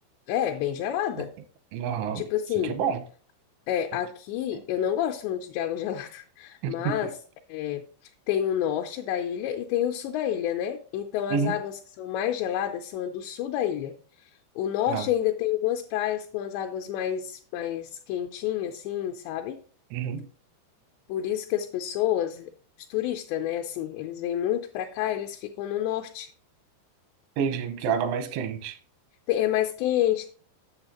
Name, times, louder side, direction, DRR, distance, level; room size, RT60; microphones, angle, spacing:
voice 1, 0.3-1.3 2.1-2.8 3.7-7.2 7.5-7.8 8.3-13.9 14.6-19.6 21.1-22.5 22.9-26.3 29.3-30.3, left 11 dB, 80° left, 2.6 m, -29 dB
voice 2, 1.7-2.3 2.6-3.0 6.6-6.9 11.3-11.6 14.9-15.0 19.9-20.3 27.4-28.8, right 7 dB, 85° right, 3.4 m, -28 dB
8.9 x 7.0 x 2.9 m
omnidirectional pair, 5.4 m